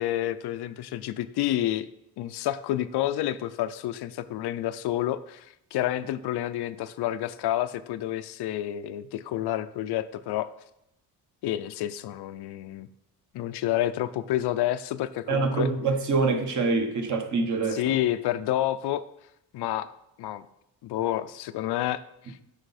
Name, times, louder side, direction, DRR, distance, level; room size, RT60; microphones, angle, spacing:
voice 1, 0.0-1.9 2.2-10.5 11.4-12.9 13.3-15.7 17.7-19.0 19.5-19.9 20.2-20.5 20.8-22.4, left 13 dB, 80° left, 13 dB, 0.5 m, -29 dB
voice 2, 15.3-18.0, right 4 dB, 50° right, 5 dB, 1.2 m, -25 dB
8.1 x 5.6 x 4.2 m, 0.81 s
cardioid pair, 125°, 39 cm